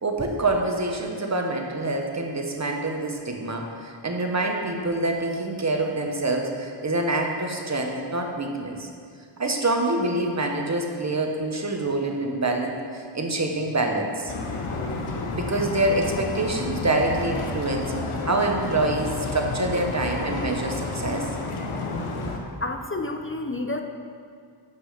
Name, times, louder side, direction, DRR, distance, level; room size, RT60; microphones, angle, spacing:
voice 1, 0.0-8.9 9.4-14.3 15.3-17.9 18.2-21.3, right 2 dB, 35° right, 2 dB, 1.1 m, -26 dB
sound 1, 14.3-22.4, left 3 dB, 80° left, 0.9 m, -30 dB
voice 2, 22.6-23.8, left 2 dB, 25° left, 4 dB, 0.6 m, -29 dB
7.7 x 6.1 x 5.0 m, 2.2 s
cardioid pair, 45°, 49 cm